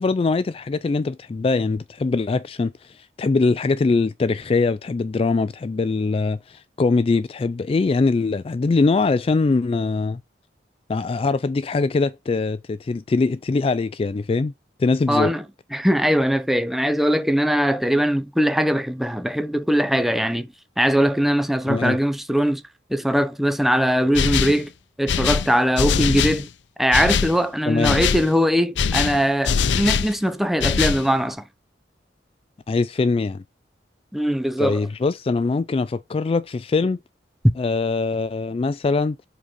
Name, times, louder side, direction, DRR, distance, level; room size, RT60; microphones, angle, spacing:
voice 1, 0.0-10.2 10.9-14.5 14.8-15.3 21.7-22.0 27.7-28.0 32.7-33.4 34.6-37.0 37.6-39.2, left 3 dB, 30° left, 0.3 m, -22 dB
voice 2, 15.1-15.4 15.7-20.5 20.8-22.6 22.9-24.7 25.0-26.5 26.8-31.4 34.1-34.9, equal, ahead, 0.7 m, -21 dB
sound 1, 24.1-24.6 25.1-26.4 26.9-27.4 27.8-28.3 28.8-30.1 30.6-31.1, left 6 dB, 90° left, 0.6 m, -22 dB
7.6 x 4.0 x 5.1 m
head